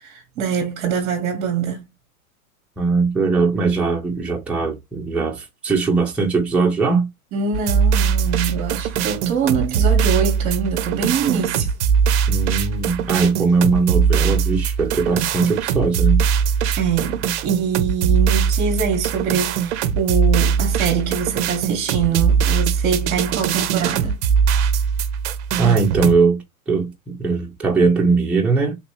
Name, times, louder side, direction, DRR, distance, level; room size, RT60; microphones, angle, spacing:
voice 1, 0.0-1.9 7.3-11.7 16.8-24.1, right 6 dB, 30° right, 1.0 m, -24 dB
voice 2, 2.8-7.1 12.3-16.2 25.6-28.8, right 4 dB, 5° right, 0.7 m, -20 dB
sound 1, 7.5-26.1, right 7 dB, 50° right, 0.6 m, -20 dB
3.2 x 2.9 x 3.0 m
hypercardioid pair, 110°, 44 cm